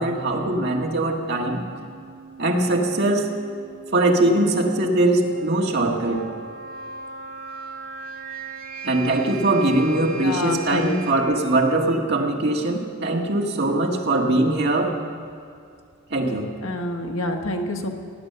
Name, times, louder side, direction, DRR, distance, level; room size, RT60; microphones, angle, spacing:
voice 1, 0.0-1.6 2.4-3.3 3.9-6.2 8.8-14.9 16.1-16.5, right 2 dB, 55° right, 0 dB, 1.7 m, -21 dB
sound 1, 1.5-11.1, right 5 dB, 75° right, 1.3 m, -38 dB
voice 2, 10.2-11.0 16.6-17.9, left 1 dB, 80° left, 3 dB, 1.4 m, -27 dB
18.0 x 8.9 x 6.7 m, 2.4 s
head